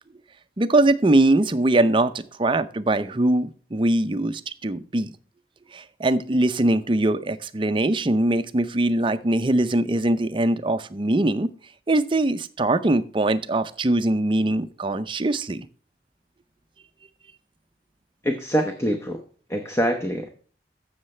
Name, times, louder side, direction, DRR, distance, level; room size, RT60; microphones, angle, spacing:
voice 1, 0.6-5.1 5.7-11.5 11.9-15.7, right 2 dB, 30° right, 11 dB, 0.5 m, -22 dB
voice 2, 18.2-19.2 19.5-20.3, equal, 15° left, 5 dB, 0.9 m, -24 dB
14.5 x 6.5 x 3.2 m, 0.43 s
head